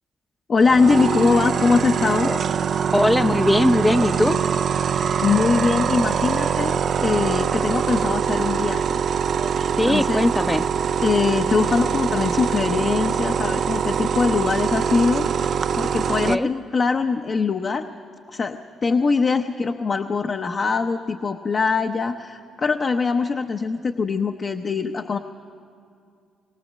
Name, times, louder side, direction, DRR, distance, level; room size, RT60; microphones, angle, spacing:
voice 1, 0.5-2.3 4.8-8.9 9.8-10.3 11.0-15.3 15.8-17.9 18.3-25.2, left 4 dB, 45° left, 5 dB, 0.8 m, -22 dB
sound 1, 0.6-16.3, right 7 dB, 55° right, 0.4 m, -23 dB
voice 2, 2.9-4.4 9.8-10.6 16.3-16.5, left 1 dB, 5° left, 11 dB, 0.7 m, -20 dB
21.5 x 18.0 x 7.5 m, 2.4 s
cardioid pair, 90°, 0 cm